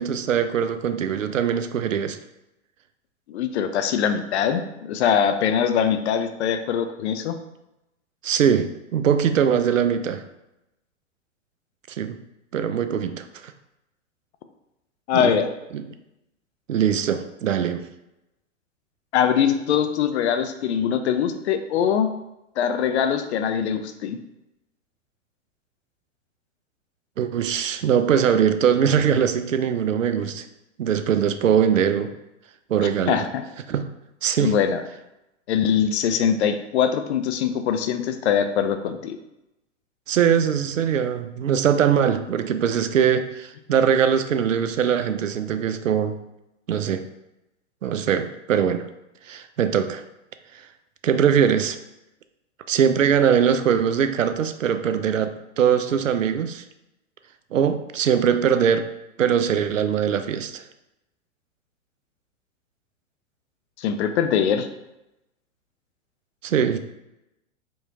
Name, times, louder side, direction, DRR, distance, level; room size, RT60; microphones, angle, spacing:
voice 1, 0.0-2.2 8.2-10.2 11.9-12.2 12.5-13.5 15.1-15.3 15.7-15.8 16.7-17.9 27.2-30.5 30.8-32.1 32.7-33.3 33.7-33.9 34.2-34.5 40.1-46.2 46.7-47.0 47.8-48.9 49.3-50.0 50.5-50.6 51.0-51.8 52.7-56.6 57.5-58.9 59.2-60.6 66.4-66.8, right 8 dB, 85° right, 9 dB, 0.5 m, -21 dB
voice 2, 3.3-7.4 15.1-15.5 19.1-22.1 22.6-24.2 32.8-33.4 34.4-34.8 35.5-39.2 63.8-64.7, left 8 dB, 60° left, 8 dB, 0.6 m, -22 dB
4.5 x 3.0 x 2.8 m, 0.92 s
hypercardioid pair, 105°, 38 cm